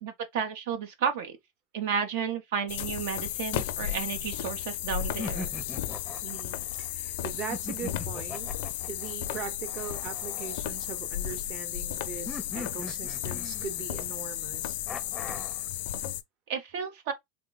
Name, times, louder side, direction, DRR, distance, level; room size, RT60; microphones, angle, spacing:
voice 1, 0.0-1.4 1.7-5.5 16.5-17.1, right 7 dB, 70° right, 0.7 m, -32 dB
sound 1, 2.7-16.2, left 12 dB, 65° left, 0.4 m, -34 dB
sound 2, 3.5-4.6 5.2-6.9 7.5-11.3 12.3-14.0 14.9-15.7, left 3 dB, 5° left, 0.5 m, -42 dB
voice 2, 6.2-8.5 8.9-14.8, right 7 dB, 40° right, 0.9 m, -40 dB
3.4 x 2.1 x 3.9 m
supercardioid pair, 155°, 0 cm